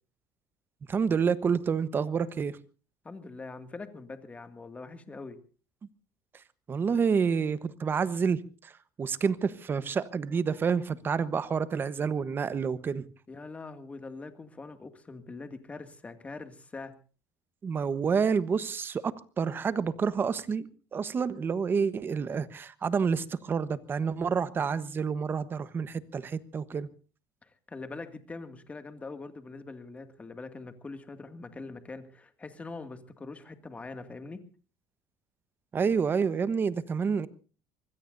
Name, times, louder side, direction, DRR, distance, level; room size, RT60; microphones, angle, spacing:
voice 1, 0.9-2.6 6.7-8.7 9.0-13.1 17.6-26.9 35.7-37.3, right 6 dB, 30° right, 14 dB, 1.1 m, -28 dB
voice 2, 3.0-5.4 13.3-17.0 27.4-34.5, left 3 dB, 20° left, 8 dB, 2.2 m, -43 dB
25.0 x 21.0 x 2.7 m, 0.37 s
cardioid pair, 125°, 7 cm